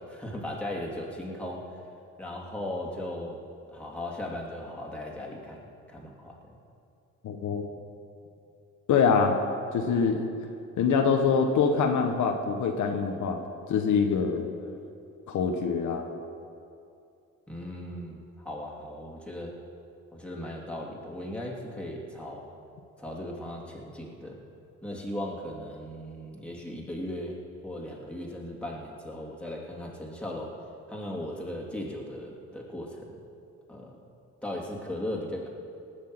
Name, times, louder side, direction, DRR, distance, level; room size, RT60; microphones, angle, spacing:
voice 1, 0.0-1.6 2.2-3.4 3.7-5.6 5.9-6.6 17.5-19.5 20.1-22.5 23.0-24.4 24.8-27.4 27.6-30.5 30.9-33.2 33.7-34.0 34.4-35.5, left 1 dB, 5° left, -3 dB, 3.0 m, -37 dB
voice 2, 7.2-7.7 8.9-9.4 9.7-10.3 10.8-13.4 13.7-14.5 15.3-16.0, left 5 dB, 75° left, 4 dB, 1.4 m, -24 dB
18.5 x 6.5 x 7.9 m, 2.5 s
cardioid pair, 90°, 30 cm